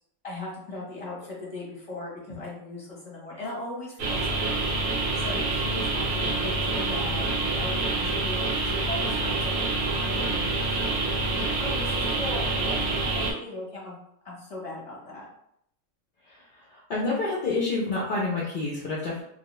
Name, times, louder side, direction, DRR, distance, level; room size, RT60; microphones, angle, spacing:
voice 1, 0.2-4.6 5.2-10.8 11.4-13.9 14.2-15.3, left 2 dB, 30° left, -5 dB, 0.8 m, -38 dB
sound 1, 4.0-13.3, right 2 dB, 60° right, 0.8 m, -27 dB
voice 2, 16.7-19.2, left 3 dB, 60° left, -6 dB, 0.5 m, -28 dB
2.2 x 2.2 x 2.9 m, 0.73 s
omnidirectional pair, 1.3 m